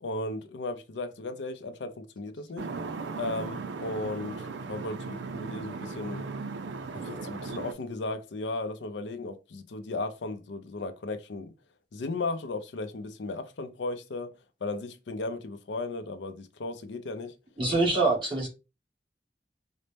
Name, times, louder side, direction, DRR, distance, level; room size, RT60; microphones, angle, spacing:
voice 1, 0.0-2.6 3.1-4.4 4.7-6.3 7.0-11.5 11.9-14.3 14.6-17.3 17.9-18.0, left 2 dB, 80° left, 0.5 m, -35 dB
sound 1, 2.6-7.7, right 4 dB, 90° right, 0.5 m, -37 dB
voice 2, 17.6-18.5, right 3 dB, 30° right, 1.6 m, -25 dB
4.0 x 2.1 x 3.3 m
head